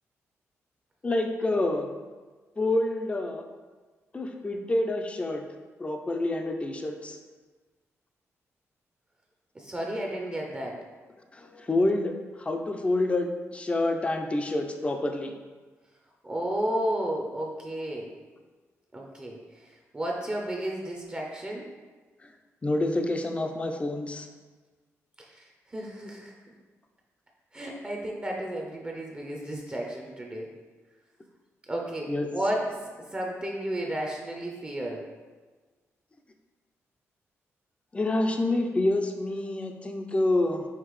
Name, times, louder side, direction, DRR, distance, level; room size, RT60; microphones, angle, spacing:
voice 1, 1.0-1.9 2.6-3.5 4.1-5.4 5.8-7.2 11.3-15.3 22.2-22.3 22.6-24.3 32.1-32.3 37.9-40.7, left 2 dB, 25° left, 4 dB, 0.5 m, -27 dB
voice 2, 9.5-10.8 16.2-18.1 18.9-21.7 25.2-26.3 27.5-30.5 31.7-32.6 33.1-35.0, right 1 dB, 20° right, -1 dB, 0.6 m, -33 dB
5.7 x 2.8 x 3.1 m, 1.4 s
cardioid pair, 100°, 5 cm